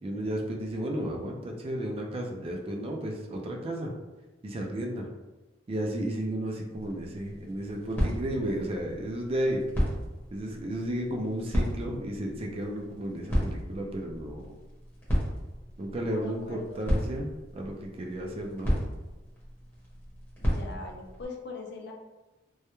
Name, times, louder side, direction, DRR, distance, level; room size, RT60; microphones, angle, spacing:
voice 1, 0.0-3.9 4.4-5.1 5.7-9.6 10.3-14.5 15.8-18.8, right 1 dB, 30° right, 1 dB, 0.3 m, -33 dB
vinyl endoftherecord, 6.7-21.3, equal, 10° left, 0.7 m, -34 dB
voice 2, 16.1-16.8 20.4-21.9, left 3 dB, 60° left, 1 dB, 0.4 m, -42 dB
2.2 x 2.1 x 2.9 m, 1.1 s
head